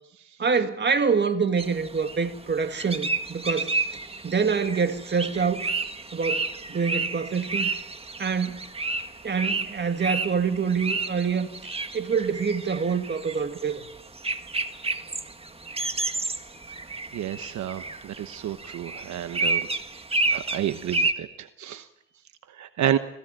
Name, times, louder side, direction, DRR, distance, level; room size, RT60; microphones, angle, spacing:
voice 1, 0.4-3.7 4.2-5.7 6.1-7.7 8.2-8.6 9.2-11.5 11.9-13.9, right 5 dB, 35° right, 2.2 m, -26 dB
sound 1, 1.6-21.1, right 3 dB, 20° right, 1.7 m, -31 dB
voice 2, 17.1-19.7 20.3-21.9 22.5-23.0, right 11 dB, 70° right, 1.1 m, -30 dB
26.5 x 16.5 x 9.1 m
cardioid pair, 90°, 30 cm